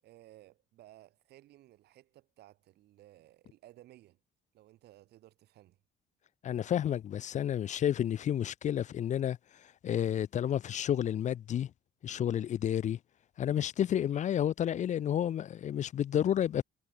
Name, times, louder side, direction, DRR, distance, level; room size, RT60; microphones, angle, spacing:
voice 1, 0.0-4.2 4.5-5.8, right 15 dB, 75° right, 7.8 m, -58 dB
voice 2, 6.4-11.7 12.0-13.0 13.4-16.6, left 10 dB, 45° left, 0.6 m, -31 dB
cardioid pair, 110°, 17 cm